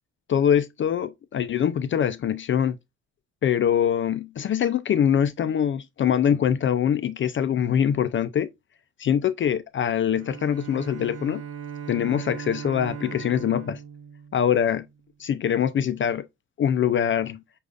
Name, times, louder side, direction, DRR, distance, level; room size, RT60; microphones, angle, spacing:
voice 1, 0.3-2.8 3.4-8.5 9.0-11.4 11.9-13.8 14.3-14.9 15.2-16.3 16.6-17.4, left 9 dB, 40° left, 0.4 m, -23 dB
Bowed string instrument, 10.1-15.0, right 8 dB, 50° right, 1.0 m, -39 dB
6.4 x 2.4 x 2.4 m
cardioid pair, 90°, 30 cm